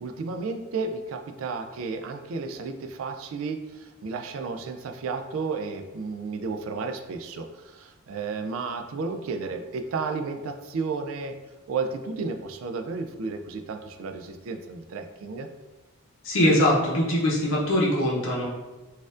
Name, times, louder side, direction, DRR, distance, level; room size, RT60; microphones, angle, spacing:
voice 1, 0.0-11.3 11.7-15.5, right 4 dB, 65° right, 6 dB, 0.3 m, -32 dB
voice 2, 16.2-18.5, left 1 dB, 60° left, -4 dB, 0.7 m, -22 dB
4.1 x 2.4 x 2.4 m, 1.1 s
head